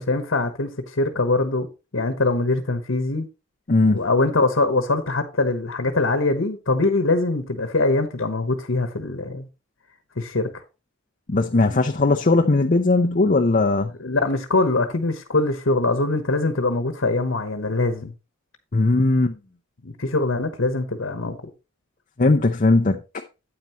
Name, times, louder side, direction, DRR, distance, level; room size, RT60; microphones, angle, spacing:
voice 1, 0.0-1.7 1.9-3.3 3.9-9.5 10.2-10.5 14.0-18.1 19.8-21.4, left 2 dB, 65° left, 1.2 m, -23 dB
voice 2, 3.7-4.0 11.3-13.9 18.7-19.3 22.2-23.0, left 2 dB, 40° left, 0.7 m, -18 dB
9.3 x 8.8 x 3.0 m
head